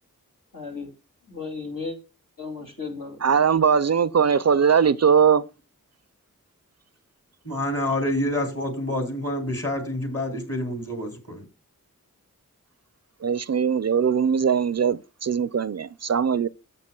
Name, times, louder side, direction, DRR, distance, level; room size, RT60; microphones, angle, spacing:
voice 1, 0.5-0.9 1.2-2.0 2.4-3.3, left 4 dB, 75° left, 2.7 m, -35 dB
voice 2, 3.2-5.4 13.2-16.5, right 7 dB, 50° right, 0.4 m, -20 dB
voice 3, 7.4-11.5, left 1 dB, 45° left, 3.6 m, -27 dB
13.0 x 8.0 x 2.3 m
wide cardioid pair, 55°, 33 cm